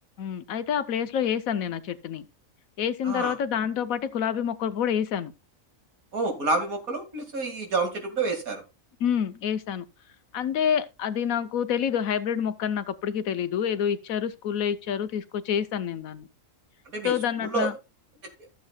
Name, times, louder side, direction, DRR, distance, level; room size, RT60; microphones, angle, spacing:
voice 1, 0.2-2.3 2.8-5.3 9.0-9.9 10.3-16.3 17.0-17.7, left 8 dB, 85° left, 1.2 m, -27 dB
voice 2, 3.0-3.3 6.1-8.6 16.9-17.2 17.4-17.7, right 3 dB, 85° right, 2.7 m, -28 dB
14.5 x 7.5 x 2.3 m
omnidirectional pair, 1.4 m